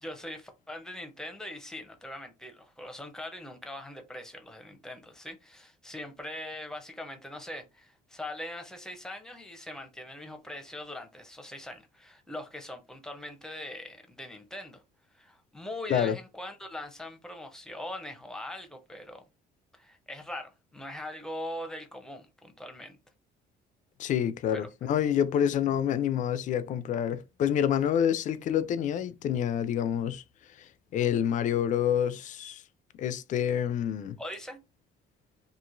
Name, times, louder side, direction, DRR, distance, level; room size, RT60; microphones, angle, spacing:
voice 1, 0.0-14.8 15.1-19.2 19.7-23.0 24.5-24.9 34.2-34.6, left 1 dB, 5° left, 0.6 m, -41 dB
voice 2, 24.0-30.2 30.9-32.6 33.0-34.2, left 9 dB, 50° left, 0.4 m, -27 dB
3.0 x 2.5 x 2.5 m
cardioid pair, 110°, 17 cm